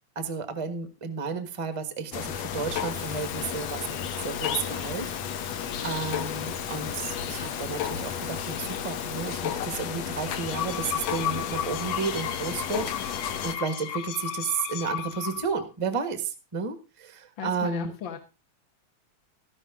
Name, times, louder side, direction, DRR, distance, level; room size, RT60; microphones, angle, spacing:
voice 1, 0.1-5.6 5.8-17.9, right 5 dB, 40° right, 9 dB, 0.4 m, -32 dB
sound 1, 2.1-13.6, left 9 dB, 70° left, 2.1 m, -33 dB
Alarm, 2.9-9.6, left 4 dB, 30° left, 1.4 m, -45 dB
sound 2, 10.3-15.6, left 10 dB, 85° left, 2.5 m, -34 dB
voice 2, 17.4-18.2, left 8 dB, 50° left, 4 dB, 1.7 m, -36 dB
13.5 x 11.5 x 3.7 m, 0.29 s
omnidirectional pair, 3.4 m